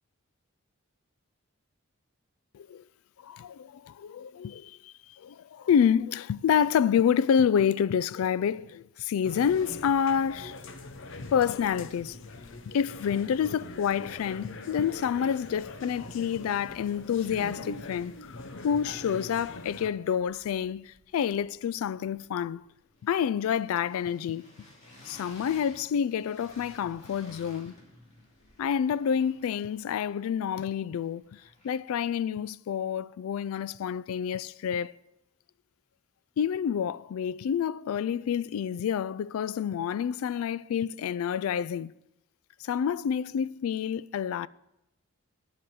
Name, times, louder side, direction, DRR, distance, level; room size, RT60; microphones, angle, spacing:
voice 1, 3.2-10.6 11.3-12.2 12.7-18.4 18.6-22.6 23.0-24.5 25.1-27.7 28.6-31.2 31.6-35.0 36.4-41.9 42.6-44.5, left 8 dB, 80° left, 0.3 m, -28 dB
sound 1, 9.2-19.9, left 2 dB, 60° left, 0.8 m, -43 dB
sound 2, 20.1-32.0, left 1 dB, 35° left, 2.3 m, -56 dB
10.5 x 5.0 x 7.6 m
head